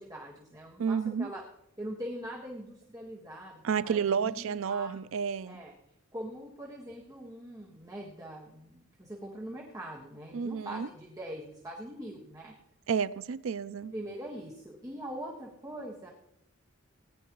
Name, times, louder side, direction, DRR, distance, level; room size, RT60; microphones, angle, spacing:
voice 1, 0.0-1.4 1.8-4.9 5.4-5.7 6.1-12.5 13.9-16.1, right 1 dB, 20° right, 1.5 m, -42 dB
voice 2, 0.8-1.3 3.6-5.6 10.3-10.9 12.9-13.9, right 6 dB, 75° right, 0.4 m, -31 dB
18.5 x 10.0 x 3.0 m
head